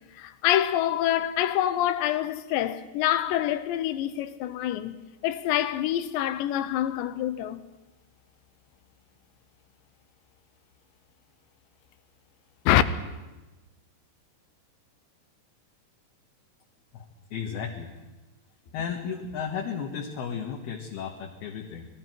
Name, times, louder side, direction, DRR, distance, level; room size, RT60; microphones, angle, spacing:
voice 1, 0.2-7.6 12.7-12.8, left 12 dB, 85° left, 3.2 m, -26 dB
voice 2, 16.9-17.9 18.7-21.9, left 7 dB, 65° left, 3.4 m, -34 dB
29.0 x 21.0 x 4.6 m
omnidirectional pair, 5.1 m